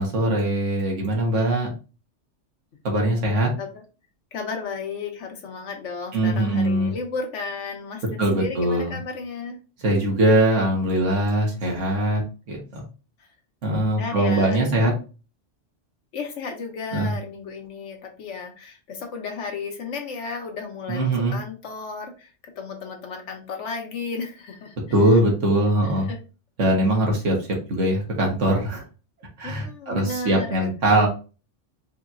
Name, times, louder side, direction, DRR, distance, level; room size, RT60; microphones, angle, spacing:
voice 1, 0.0-1.7 2.8-3.5 6.1-6.9 8.2-8.9 9.8-12.2 12.5-12.8 13.6-14.9 16.9-17.1 20.9-21.4 24.9-26.1 26.6-27.4 27.7-28.8 29.4-31.1, right 1 dB, 90° right, -1 dB, 1.6 m, -21 dB
voice 2, 4.3-9.6 14.0-15.0 16.1-24.7 25.1-25.2 25.8-26.2 29.4-30.7, left 4 dB, 80° left, 4 dB, 1.3 m, -34 dB
4.9 x 2.9 x 2.5 m, 0.33 s
omnidirectional pair, 1.2 m